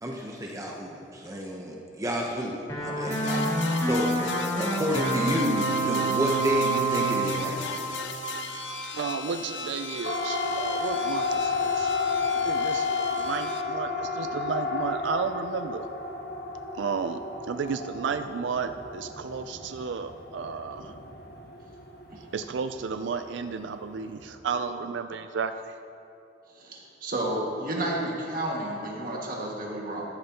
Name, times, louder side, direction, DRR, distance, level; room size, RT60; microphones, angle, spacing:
voice 1, 0.0-4.1 4.6-7.8, equal, 15° right, -1 dB, 0.9 m, -30 dB
sound 1, 2.7-8.8, right 3 dB, 20° left, 2.2 m, -28 dB
sound 2, 3.1-13.6, left 6 dB, 75° left, 0.6 m, -37 dB
voice 2, 8.9-11.9 12.3-15.9 16.7-20.9 22.3-25.8, right 5 dB, 80° right, 9 dB, 0.4 m, -33 dB
Siren, 10.0-24.3, left 4 dB, 55° left, 1.3 m, -32 dB
voice 3, 26.6-30.0, right 1 dB, 50° right, -2 dB, 1.9 m, -31 dB
14.0 x 11.0 x 2.9 m, 2.7 s
head